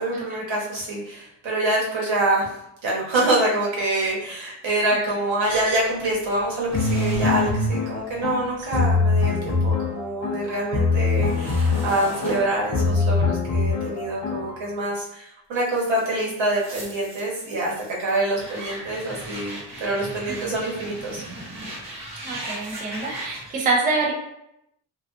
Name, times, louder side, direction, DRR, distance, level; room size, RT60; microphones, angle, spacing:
voice 1, 0.0-2.5 2.8-17.7 18.0-21.2, right 2 dB, 75° right, -4 dB, 1.0 m, -25 dB
sound 1, 5.4-9.7 10.0-15.0 15.5-23.5, right 1 dB, 35° right, 0.8 m, -39 dB
sound 2, 6.7-14.6, left 4 dB, 45° left, 0.5 m, -23 dB
voice 2, 22.2-24.1, right 3 dB, 20° right, -2 dB, 0.3 m, -25 dB
2.4 x 2.3 x 2.4 m, 0.81 s
wide cardioid pair, 155°, 45 cm